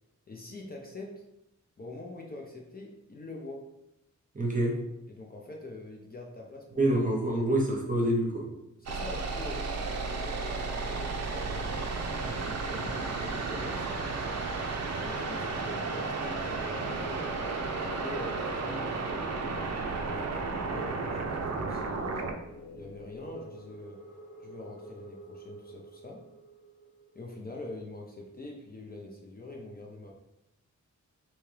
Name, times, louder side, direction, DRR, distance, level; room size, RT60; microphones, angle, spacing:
voice 1, 0.3-1.2 1.8-3.7 5.1-7.0 8.8-9.7 10.0-13.9 15.0-17.3 18.0-19.2 19.7-22.4 22.7-24.0 24.4-26.2 27.1-30.1, left 2 dB, 30° left, -1 dB, 0.5 m, -44 dB
voice 2, 4.3-4.7 6.8-8.4, right 1 dB, 25° right, -1 dB, 0.8 m, -26 dB
sound 1, 8.9-22.3, right 4 dB, 60° right, 0.5 m, -33 dB
sound 2, 15.1-27.8, left 1 dB, 80° left, 0.9 m, -49 dB
3.4 x 2.8 x 3.1 m, 0.88 s
wide cardioid pair, 135°, 30 cm